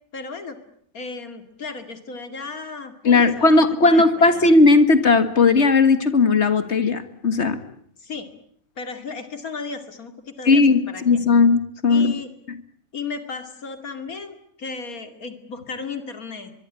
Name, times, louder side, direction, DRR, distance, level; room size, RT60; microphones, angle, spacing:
voice 1, 0.1-0.6 0.9-4.5 8.0-8.3 8.8-11.2 11.9-12.3 12.9-16.5, left 4 dB, 90° left, 8 dB, 2.9 m, -35 dB
voice 2, 3.1-7.6 10.5-12.1, left 3 dB, 50° left, 11 dB, 2.1 m, -16 dB
23.5 x 23.5 x 9.9 m, 0.64 s
omnidirectional pair, 1.5 m